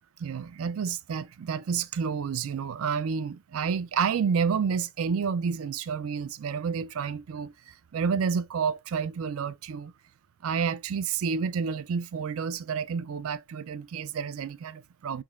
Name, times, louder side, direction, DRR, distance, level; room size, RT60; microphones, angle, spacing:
voice 1, 0.2-9.9 10.4-15.2, right 6 dB, 75° right, 0.4 m, -30 dB
4.6 x 3.8 x 2.4 m
head